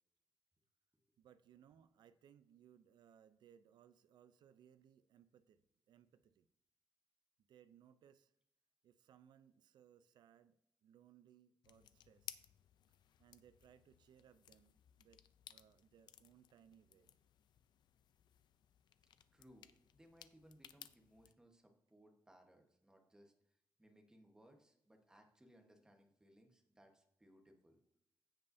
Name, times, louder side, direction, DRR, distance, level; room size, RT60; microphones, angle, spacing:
voice 1, 1.2-6.5 7.5-8.3 8.8-12.4 13.2-15.2 15.5-17.1, right 9 dB, 85° right, 0.4 m, -66 dB
sound 1, 11.6-21.3, left 10 dB, 85° left, 0.4 m, -60 dB
voice 2, 19.3-23.3 23.8-27.8, equal, 10° right, 1.1 m, -66 dB
16.0 x 5.4 x 2.7 m
wide cardioid pair, 175°, 7 cm